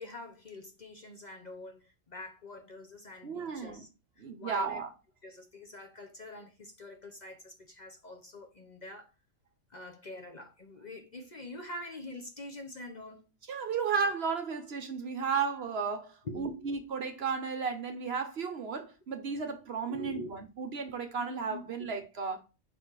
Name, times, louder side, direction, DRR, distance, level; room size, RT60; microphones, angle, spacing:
voice 1, 0.0-3.9 4.2-4.8 5.2-9.1 9.7-13.3 16.2-16.7 19.4-19.5 19.9-20.3 21.3-21.9, left 2 dB, 40° left, 0.9 m, -45 dB
voice 2, 3.2-3.8 4.2-4.9 13.5-22.4, right 5 dB, 55° right, 0.9 m, -34 dB
5.3 x 4.2 x 4.7 m
omnidirectional pair, 1.4 m